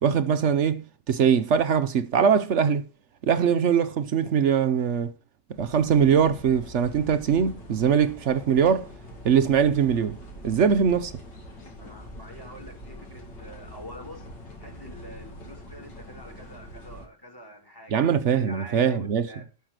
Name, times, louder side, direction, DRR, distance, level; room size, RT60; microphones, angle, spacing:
voice 1, 0.0-2.8 3.2-5.1 5.6-8.9 9.2-10.2 10.4-11.1 17.9-19.3, right 7 dB, 60° right, 0.7 m, -22 dB
sound 1, 5.5-17.1, equal, 80° left, 3.0 m, -44 dB
voice 2, 11.8-14.3 14.6-19.5, equal, 10° left, 2.4 m, -45 dB
12.0 x 5.9 x 6.5 m
omnidirectional pair, 1.9 m